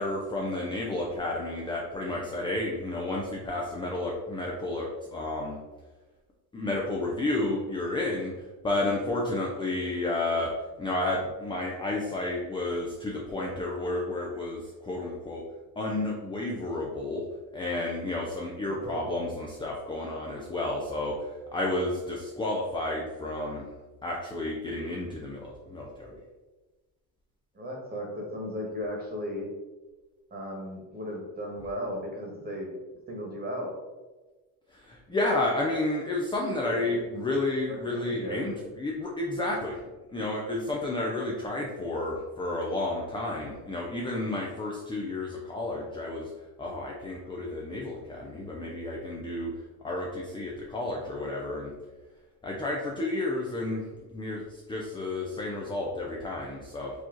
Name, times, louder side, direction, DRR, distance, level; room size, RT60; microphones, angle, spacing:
voice 1, 0.0-5.6 6.5-10.5 10.8-15.4 15.8-17.2 17.5-23.7 24.0-26.2 34.7-39.8 40.1-46.3 46.6-49.5 49.8-51.7 52.4-56.9, left 2 dB, 10° left, -2 dB, 0.4 m, -31 dB
voice 2, 18.6-19.1 27.5-29.5 30.3-32.7 33.1-33.7 36.6-36.9 37.7-38.4, equal, 20° right, -1 dB, 1.3 m, -36 dB
4.8 x 2.9 x 3.8 m, 1.2 s
cardioid pair, 140°, 42 cm